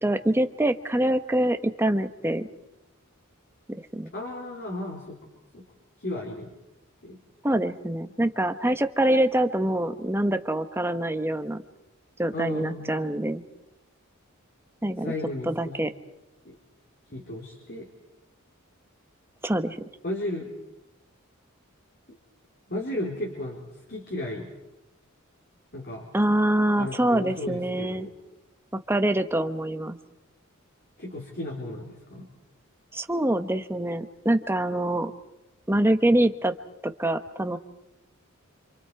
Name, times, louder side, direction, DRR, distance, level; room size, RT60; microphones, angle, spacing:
voice 1, 0.0-2.5 3.9-4.1 7.4-11.6 12.2-13.4 14.8-15.1 15.4-15.9 19.4-19.8 26.1-28.1 28.9-30.0 32.9-35.1 35.7-36.5 36.8-37.6, right 1 dB, 10° right, 8 dB, 1.1 m, -25 dB
voice 2, 4.1-5.2 5.5-5.6 6.0-6.5 7.0-7.2 12.3-12.9 15.0-15.8 16.4-16.6 17.1-17.9 20.0-20.5 22.7-24.5 25.7-26.1 26.8-28.1 31.0-32.3, left 1 dB, 50° left, -1 dB, 3.7 m, -34 dB
29.0 x 27.0 x 4.8 m, 0.95 s
head